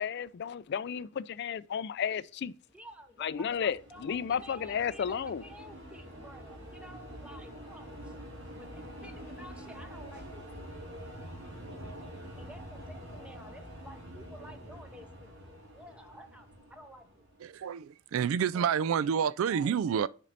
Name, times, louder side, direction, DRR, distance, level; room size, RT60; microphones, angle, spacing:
voice 1, 0.0-2.5 3.2-5.4, left 7 dB, 50° left, 0.3 m, -33 dB
voice 2, 2.7-8.1 8.6-10.5 12.3-15.4 15.7-17.3, equal, 5° right, 0.7 m, -52 dB
sound 1, 3.1-17.6, equal, 90° right, 4.2 m, -46 dB
voice 3, 17.4-20.1, right 7 dB, 70° right, 0.3 m, -29 dB
7.4 x 5.3 x 4.0 m
head